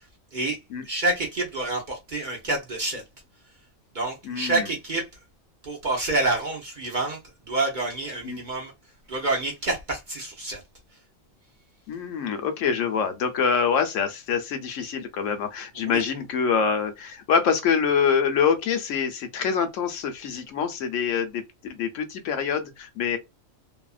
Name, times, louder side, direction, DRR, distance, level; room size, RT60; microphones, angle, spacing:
voice 1, 0.8-3.0 3.9-5.0 5.6-7.2 7.5-8.7 9.1-10.6 15.8-16.0, right 2 dB, 45° right, 0.8 m, -27 dB
voice 2, 4.2-4.7 8.2-8.4 11.9-23.2, left 6 dB, 75° left, 0.9 m, -25 dB
2.8 x 2.3 x 2.3 m
omnidirectional pair, 1.4 m